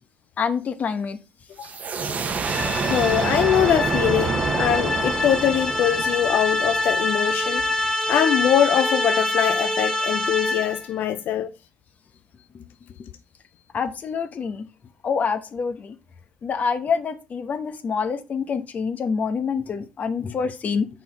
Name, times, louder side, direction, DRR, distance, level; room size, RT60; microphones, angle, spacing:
voice 1, 0.4-1.2 12.5-12.6 13.7-14.7 15.0-16.0 16.4-20.9, left 5 dB, 45° left, 0.9 m, -26 dB
sound 1, 1.6-7.1, right 5 dB, 45° right, 0.9 m, -27 dB
sound 2, 2.4-10.9, left 2 dB, 10° left, 1.7 m, -25 dB
voice 2, 2.9-11.5, left 10 dB, 65° left, 0.4 m, -23 dB
5.9 x 4.2 x 4.0 m
hypercardioid pair, 60°, 4 cm